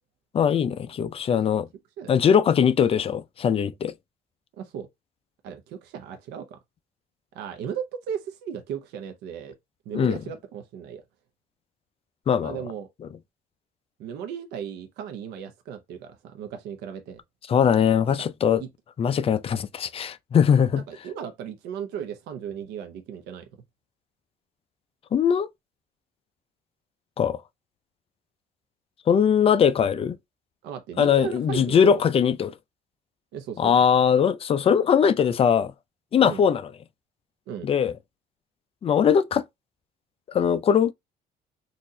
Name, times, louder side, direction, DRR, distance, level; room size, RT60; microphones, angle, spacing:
voice 1, 0.3-1.7 2.1-3.9 9.9-10.2 12.3-12.6 17.5-18.6 19.0-20.8 25.1-25.5 27.2-27.4 29.1-30.2 31.0-32.5 33.6-35.7 36.1-36.7 37.6-37.9 38.8-39.4 40.3-40.9, left 7 dB, 35° left, 0.4 m, -21 dB
voice 2, 4.6-4.9 5.4-6.6 7.3-9.5 9.9-11.0 12.4-12.9 14.0-17.2 18.6-18.7 20.9-23.5 30.6-32.0 33.3-33.7 36.2-36.4 37.5-37.7, right 8 dB, 85° right, 0.8 m, -36 dB
4.0 x 2.5 x 2.7 m
cardioid pair, 110°, 17 cm